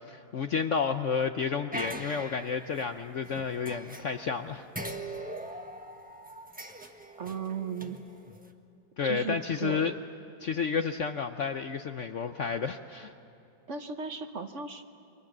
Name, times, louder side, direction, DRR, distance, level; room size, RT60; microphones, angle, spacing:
voice 1, 0.1-4.7 9.0-9.9 10.4-13.1, left 6 dB, 60° left, 8 dB, 0.8 m, -31 dB
sound 1, 1.7-4.4 4.7-8.5, right 1 dB, 5° right, 1.1 m, -41 dB
voice 2, 7.2-8.0 9.0-9.9 13.7-14.8, right 6 dB, 45° right, 7 dB, 1.2 m, -36 dB
29.5 x 24.5 x 7.4 m, 2.9 s
omnidirectional pair, 1.9 m